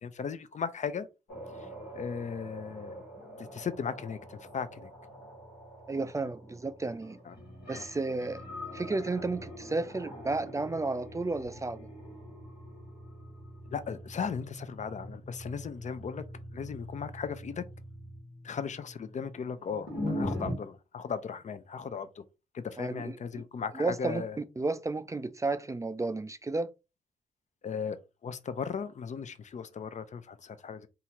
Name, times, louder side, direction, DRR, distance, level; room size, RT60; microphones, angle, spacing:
voice 1, 0.0-1.1 1.6-1.7 1.9-3.0 3.4-4.9 7.3-7.4 7.7-7.8 13.7-16.2 16.5-17.6 18.4-22.2 22.5-24.4 27.6-30.9, left 6 dB, 45° left, 0.5 m, -37 dB
sound 1, 1.3-20.5, left 1 dB, 75° left, 1.5 m, -43 dB
voice 2, 5.9-7.2 7.7-8.4 8.7-11.9 22.8-23.4 23.7-26.7, right 3 dB, 20° right, 0.3 m, -32 dB
2.8 x 2.4 x 2.9 m
supercardioid pair, 45°, 17 cm